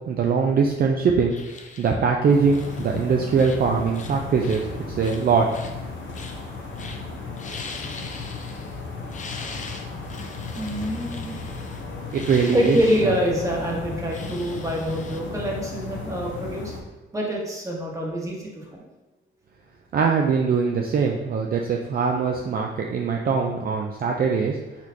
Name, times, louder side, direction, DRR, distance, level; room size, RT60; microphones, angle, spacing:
voice 1, 0.1-1.3 1.8-5.5 12.1-12.8 13.0-13.1 19.9-24.6, right 5 dB, 45° right, 1 dB, 0.4 m, -22 dB
sound 1, 1.3-1.9 2.5-3.0 3.3-3.6 3.9-4.6 5.0-5.7 6.1-6.5 6.8-7.0 7.3-8.8 9.1-13.1 14.1-15.2, left 4 dB, 35° left, 0.5 m, -41 dB
sound 2, 2.3-16.8, left 3 dB, 65° left, 0.8 m, -35 dB
voice 2, 10.5-11.4 12.5-16.7 17.1-18.9, equal, 15° right, -2 dB, 1.0 m, -26 dB
4.5 x 4.1 x 2.7 m, 1.0 s
wide cardioid pair, 135°, 21 cm